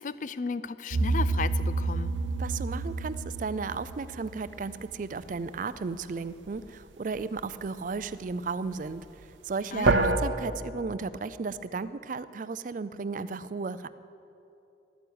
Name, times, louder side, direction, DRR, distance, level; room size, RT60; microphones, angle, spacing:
voice 1, 0.0-2.1 9.7-10.1, left 5 dB, 45° left, 15 dB, 0.4 m, -34 dB
Baking tray (sheet metal) gong, 0.9-5.1 9.9-10.2, right 3 dB, 90° right, 0.8 m, -28 dB
voice 2, 2.4-9.0 9.4-13.9, right 4 dB, 45° right, 15 dB, 0.4 m, -34 dB
12.0 x 9.2 x 8.7 m, 2.8 s
head